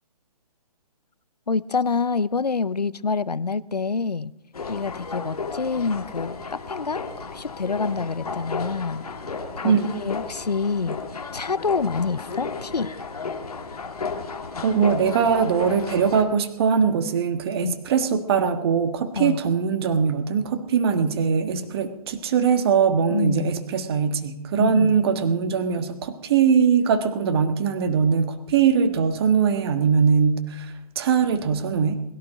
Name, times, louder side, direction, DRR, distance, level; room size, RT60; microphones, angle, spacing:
voice 1, 1.5-4.3 4.7-7.0 7.3-11.0 11.3-12.9 17.6-17.8 19.2-19.4 23.1-23.5 24.6-25.0, left 4 dB, 85° left, 0.7 m, -27 dB
sound 1, 4.5-16.2, left 4 dB, 65° left, 2.2 m, -34 dB
voice 2, 14.6-32.0, right 6 dB, 40° right, 1.4 m, -21 dB
21.5 x 11.5 x 5.0 m
figure-of-eight pair, 135°, 20 cm